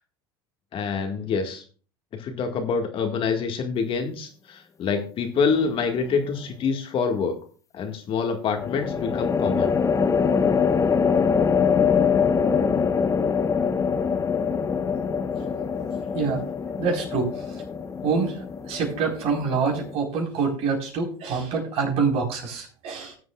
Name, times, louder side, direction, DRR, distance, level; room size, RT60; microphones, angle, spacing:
voice 1, 0.7-1.6 2.1-7.4 7.7-9.8, left 5 dB, 45° left, 4 dB, 1.8 m, -26 dB
sound 1, 5.5-6.0 8.6-19.9, left 6 dB, 25° left, 0.8 m, -24 dB
voice 2, 16.8-17.6 18.0-23.2, right 5 dB, 55° right, 0 dB, 4.2 m, -26 dB
18.0 x 7.6 x 2.4 m, 0.40 s
hypercardioid pair, 90°, 13 cm